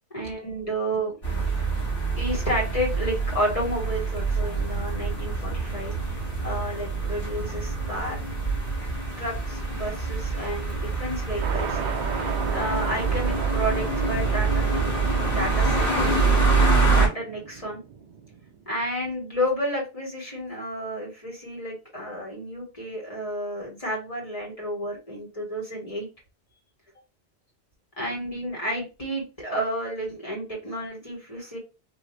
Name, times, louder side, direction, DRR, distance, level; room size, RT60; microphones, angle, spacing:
voice 1, 0.1-1.1 2.2-8.2 9.2-11.8 12.5-17.8 18.6-26.1 28.0-31.6, equal, 35° left, -2 dB, 1.4 m, -31 dB
sound 1, 1.2-17.1, right 4 dB, 80° left, 2.2 m, -25 dB
sound 2, 11.4-19.0, right 6 dB, 55° right, 0.6 m, -35 dB
4.0 x 2.5 x 3.1 m, 0.28 s
omnidirectional pair, 1.1 m